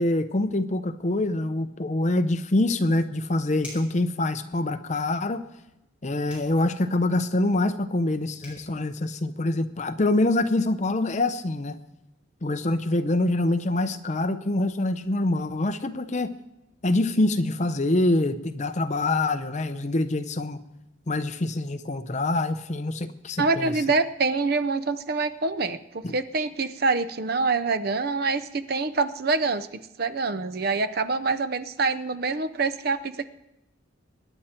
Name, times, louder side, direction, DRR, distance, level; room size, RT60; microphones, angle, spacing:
voice 1, 0.0-5.4 6.0-11.8 12.4-16.3 16.8-20.6 21.1-23.7 26.0-26.1, left 2 dB, 35° left, 10 dB, 0.6 m, -25 dB
sound 1, 3.6-4.0 6.3-6.6 8.1-8.2 8.4-8.6, left 1 dB, 5° right, 5.1 m, -43 dB
voice 2, 23.4-33.3, right 3 dB, 50° right, 12 dB, 0.6 m, -26 dB
23.5 x 9.9 x 4.4 m, 0.90 s
head